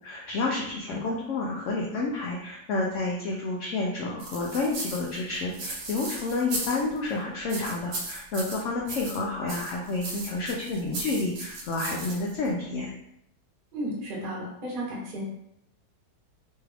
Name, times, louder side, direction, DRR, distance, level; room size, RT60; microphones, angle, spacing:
voice 1, 0.0-12.9, left 3 dB, 80° left, -2 dB, 0.6 m, -30 dB
voice 2, 0.9-1.2 13.7-15.2, equal, 35° right, -5 dB, 0.9 m, -34 dB
sound 1, 4.2-7.1 7.5-9.2 9.5-12.5, right 2 dB, 85° right, 1.4 m, -36 dB
3.3 x 2.3 x 3.3 m, 0.77 s
omnidirectional pair, 1.8 m